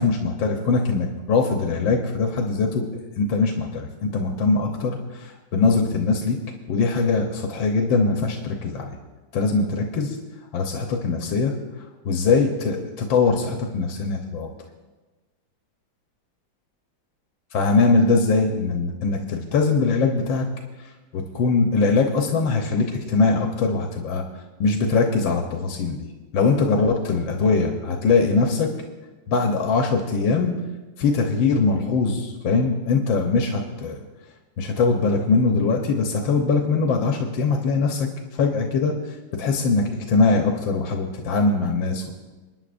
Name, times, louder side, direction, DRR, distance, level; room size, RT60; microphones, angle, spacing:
voice 1, 0.0-2.8 3.2-6.4 6.7-9.0 9.3-10.2 10.5-11.5 12.1-14.5 17.5-20.5 21.1-24.2 24.6-26.1 26.3-28.7 29.3-30.6 31.0-34.0 34.6-38.9 39.3-42.1, left 4 dB, 90° left, 2 dB, 1.7 m, -22 dB
29.0 x 10.0 x 2.6 m, 1.2 s
omnidirectional pair, 2.1 m